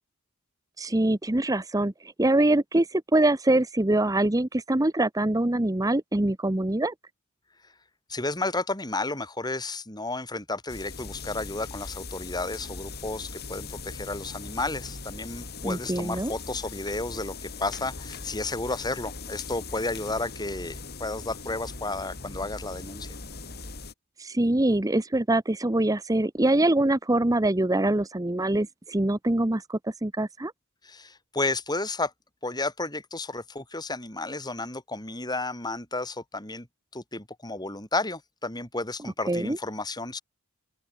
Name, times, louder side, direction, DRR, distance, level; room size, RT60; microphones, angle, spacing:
voice 1, 0.8-6.9 15.6-16.3 24.2-30.5 39.3-39.6, right 1 dB, 15° right, 0.8 m, -24 dB
voice 2, 8.1-23.1 30.8-32.1 32.4-36.7 36.9-40.2, left 2 dB, 20° left, 6.0 m, -32 dB
sound 1, 10.7-23.9, left 4 dB, 45° left, 4.6 m, -40 dB
open air
head